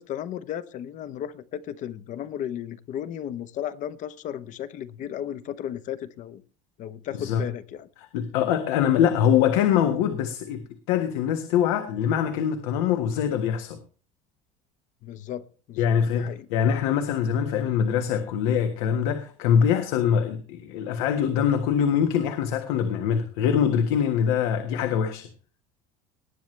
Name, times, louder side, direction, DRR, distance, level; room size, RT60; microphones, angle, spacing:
voice 1, 0.0-6.4 6.8-7.9 15.0-16.5, left 10 dB, 45° left, 0.9 m, -35 dB
voice 2, 8.1-13.8 15.8-25.3, left 8 dB, 85° left, 1.6 m, -23 dB
19.0 x 9.3 x 3.3 m
cardioid pair, 140°, 18 cm